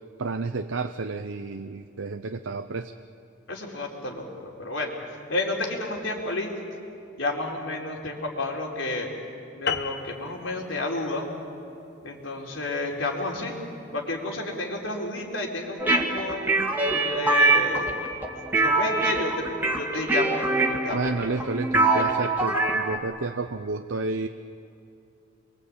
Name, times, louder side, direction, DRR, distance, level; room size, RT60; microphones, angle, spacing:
voice 1, 0.2-2.9 20.9-24.3, right 3 dB, 80° right, 8 dB, 0.7 m, -31 dB
voice 2, 3.5-5.0 5.3-6.5 7.2-9.1 9.5-11.3 12.0-13.6 13.9-16.4 16.8-17.9 18.5-19.4 19.8-21.5, left 2 dB, 85° left, 0 dB, 4.3 m, -31 dB
sound 1, 9.7-14.4, left 6 dB, 55° left, 1.1 m, -36 dB
sound 2, 15.8-23.0, right 2 dB, 10° right, 2.0 m, -24 dB
28.0 x 23.0 x 8.7 m, 2.8 s
head